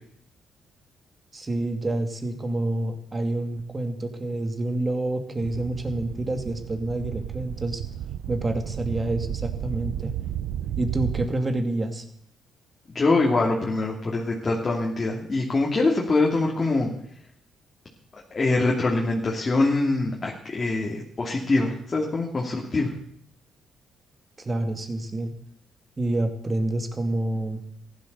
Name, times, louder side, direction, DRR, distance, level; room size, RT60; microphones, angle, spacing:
voice 1, 1.3-7.8 8.3-10.1 10.8-12.0 24.4-25.3 26.0-27.6, right 1 dB, 25° right, 7 dB, 2.4 m, -28 dB
sound 1, 5.4-11.3, right 11 dB, 85° right, 0.7 m, -33 dB
voice 2, 12.9-16.9 18.3-22.9, left 2 dB, 30° left, -2 dB, 2.8 m, -24 dB
15.0 x 11.5 x 6.9 m, 0.68 s
cardioid pair, 90°, 0 cm